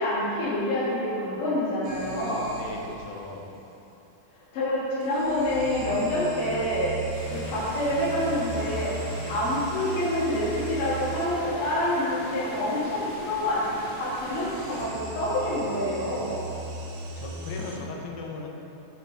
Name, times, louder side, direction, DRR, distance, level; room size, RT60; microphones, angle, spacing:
voice 1, 0.0-2.5 4.5-6.9 7.3-8.9 9.3-16.4, left 1 dB, 50° left, -8 dB, 2.0 m, -27 dB
sound 1, 1.8-3.1 5.0-11.7 14.1-17.8, right 3 dB, 80° right, 2.4 m, -38 dB
voice 2, 2.6-3.5 7.3-7.5 9.2-9.4 15.3-16.2 17.2-18.5, left 3 dB, 85° left, 0 dB, 2.5 m, -39 dB
sound 2, 7.1-14.8, equal, 65° left, 0.8 m, -41 dB
6.7 x 4.3 x 4.0 m, 2.9 s
omnidirectional pair, 4.1 m